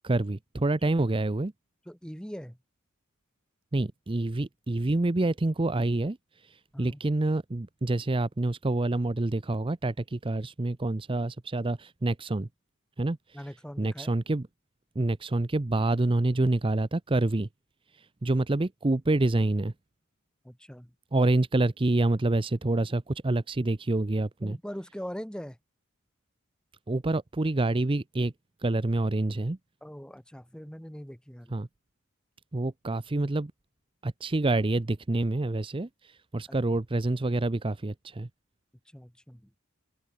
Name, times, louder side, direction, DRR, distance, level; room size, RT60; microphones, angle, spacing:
voice 1, 0.0-1.5 3.7-12.5 13.0-13.4 13.8-14.5 15.0-17.5 17.9-19.7 21.1-24.6 26.9-28.3 28.6-29.6 31.5-31.7 32.5-33.5 34.0-38.3, right 2 dB, 25° right, 0.6 m, -27 dB
voice 2, 1.9-2.6 6.7-7.0 13.3-14.1 20.4-20.9 24.4-25.6 29.8-31.5 36.5-36.6 38.9-39.5, equal, 5° left, 2.4 m, -41 dB
open air
head